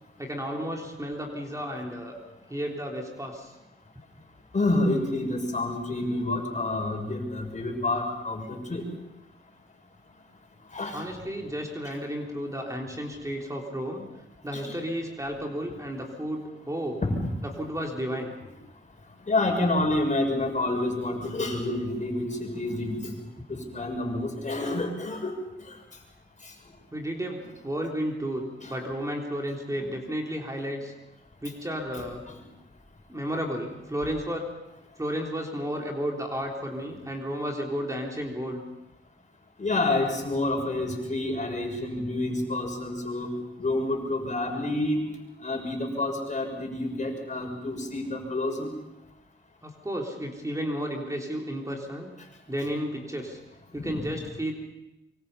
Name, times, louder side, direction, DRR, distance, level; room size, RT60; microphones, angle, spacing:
voice 1, 0.2-2.2 2.5-3.5 10.9-14.1 14.4-17.0 17.4-18.4 26.9-30.9 31.4-32.2 33.1-34.4 35.0-38.6 49.6-52.1 52.5-53.4 53.7-54.5, equal, 15° right, 0 dB, 3.6 m, -32 dB
voice 2, 4.5-8.9 10.7-11.0 14.5-14.8 17.0-17.2 19.3-23.0 23.5-25.4 28.6-28.8 39.6-43.3 43.6-45.1 45.4-48.7 53.8-54.1, left 2 dB, 40° left, 3 dB, 6.4 m, -28 dB
25.0 x 24.0 x 5.7 m, 0.92 s
cardioid pair, 85°, 20 cm